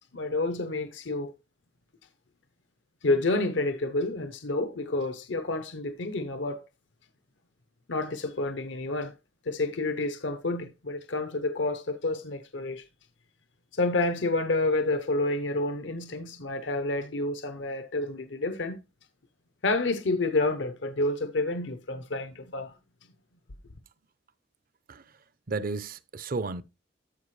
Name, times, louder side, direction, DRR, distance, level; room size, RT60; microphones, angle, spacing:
voice 1, 0.1-1.3 3.0-6.6 7.9-9.1 9.5-12.8 13.7-18.8 19.6-22.7, left 2 dB, 75° left, 0.8 m, -29 dB
voice 2, 25.5-26.6, right 3 dB, 50° right, 0.6 m, -33 dB
13.0 x 4.9 x 3.2 m
head